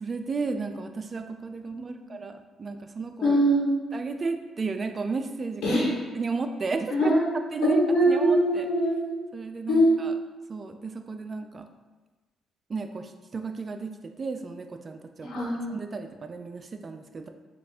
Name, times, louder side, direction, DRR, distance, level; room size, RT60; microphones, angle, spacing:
voice 1, 0.0-2.3 2.6-3.4 3.9-5.8 6.1-7.1 7.5-7.8 8.1-8.7 9.3-10.1 10.5-11.7 12.7-13.9 14.2-15.3 15.7-17.3, right 4 dB, 35° right, 7 dB, 0.3 m, -33 dB
voice 2, 3.2-3.7 5.6-5.9 6.9-7.3 7.6-9.0 9.7-9.9 15.2-15.6, equal, 90° left, -6 dB, 1.5 m, -22 dB
4.7 x 2.4 x 3.6 m, 1.2 s
cardioid pair, 90°, 0 cm